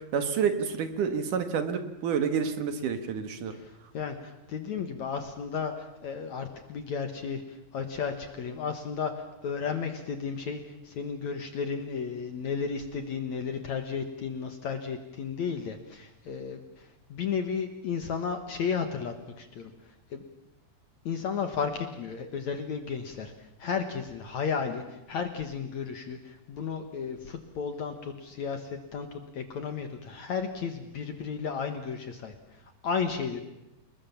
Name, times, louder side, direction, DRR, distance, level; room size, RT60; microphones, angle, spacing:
voice 1, 0.0-3.6, right 6 dB, 60° right, 8 dB, 2.7 m, -29 dB
voice 2, 3.5-19.7 20.1-20.2 21.1-33.4, left 6 dB, 60° left, 7 dB, 2.1 m, -34 dB
29.0 x 20.5 x 7.3 m, 0.93 s
omnidirectional pair, 4.9 m